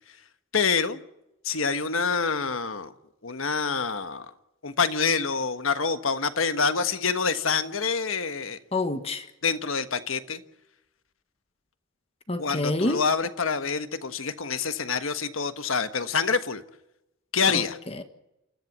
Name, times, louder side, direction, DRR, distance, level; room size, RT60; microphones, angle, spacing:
voice 1, 0.5-1.0 1.4-2.9 3.2-4.2 4.6-8.6 9.4-10.4 12.4-16.6 17.3-17.8, left 5 dB, 80° left, 10 dB, 1.4 m, -26 dB
voice 2, 8.7-9.3 12.3-13.0 17.5-18.0, left 2 dB, 30° left, 8 dB, 1.4 m, -28 dB
28.0 x 14.0 x 7.4 m, 0.88 s
head